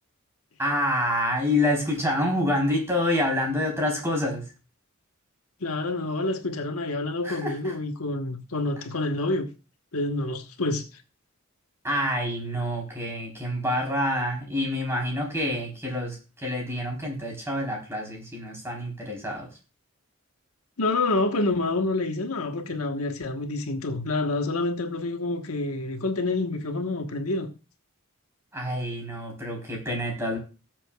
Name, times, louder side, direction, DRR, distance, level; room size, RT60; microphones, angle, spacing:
voice 1, 0.6-4.4 7.2-7.7 11.8-19.5 28.5-30.4, left 1 dB, 10° right, 4.0 m, -27 dB
voice 2, 5.6-9.5 9.9-10.9 20.8-27.5, left 2 dB, 90° left, 1.3 m, -28 dB
18.5 x 7.6 x 2.4 m
head